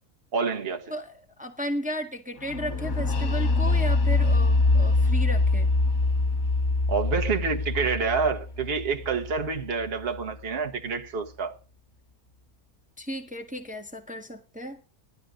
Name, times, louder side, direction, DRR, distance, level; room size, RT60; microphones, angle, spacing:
voice 1, 0.3-0.8 6.9-11.5, right 5 dB, 45° right, 1.7 m, -28 dB
voice 2, 0.9-5.7 13.0-14.8, equal, 5° right, 1.7 m, -34 dB
sound 1, 2.5-10.2, left 3 dB, 65° left, 2.0 m, -24 dB
17.5 x 13.0 x 3.8 m
omnidirectional pair, 1.5 m